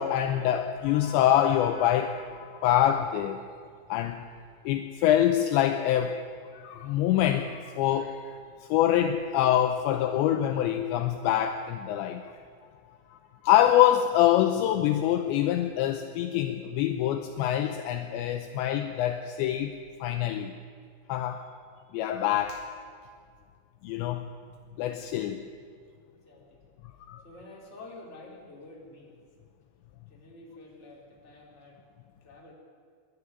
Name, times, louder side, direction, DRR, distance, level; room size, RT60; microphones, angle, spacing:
voice 1, 0.0-3.4 3.9-4.3 4.7-6.2 6.5-8.4 8.7-12.3 13.1-13.2 13.4-20.5 21.1-21.4 21.9-22.7 23.8-24.3 24.8-25.4 27.1-27.2, left 11 dB, 80° left, 7 dB, 2.7 m, -25 dB
voice 2, 26.1-26.6 27.2-29.2 30.1-31.8 32.2-32.5, left 2 dB, 15° left, -3 dB, 3.3 m, -49 dB
23.5 x 11.5 x 9.6 m, 2.1 s
omnidirectional pair, 5.8 m